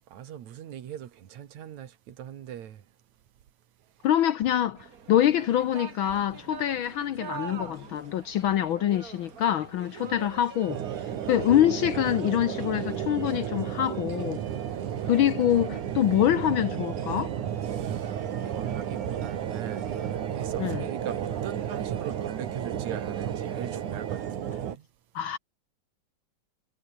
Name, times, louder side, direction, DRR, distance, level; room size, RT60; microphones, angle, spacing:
voice 1, 0.0-2.8 10.0-10.2 14.7-14.9 15.3-15.4 17.7-19.9 20.3-24.9, right 10 dB, 70° right, 2.9 m, -40 dB
voice 2, 4.0-10.8 11.3-14.4 15.1-17.3 20.6-20.8 25.1-25.4, left 11 dB, 85° left, 1.1 m, -25 dB
sound 1, 4.7-24.6, right 6 dB, 40° right, 1.4 m, -46 dB
sound 2, 5.2-20.9, left 2 dB, 30° left, 8.2 m, -57 dB
sound 3, 10.7-24.8, right 9 dB, 90° right, 3.4 m, -33 dB
omnidirectional pair, 3.4 m